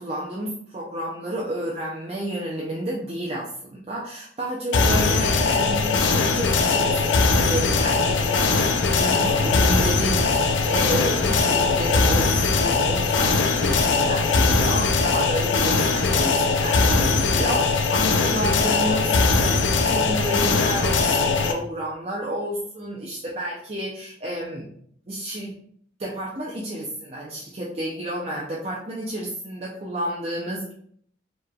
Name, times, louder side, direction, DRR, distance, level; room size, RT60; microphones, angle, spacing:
voice 1, 0.0-24.7 25.1-25.5 26.0-30.7, right 1 dB, 35° right, -4 dB, 0.5 m, -31 dB
sound 1, 4.7-21.5, left 4 dB, 80° left, 0.5 m, -20 dB
sound 2, 7.7-8.6 9.0-14.3, left 1 dB, 25° left, 1.0 m, -35 dB
4.7 x 3.2 x 2.3 m, 0.62 s
head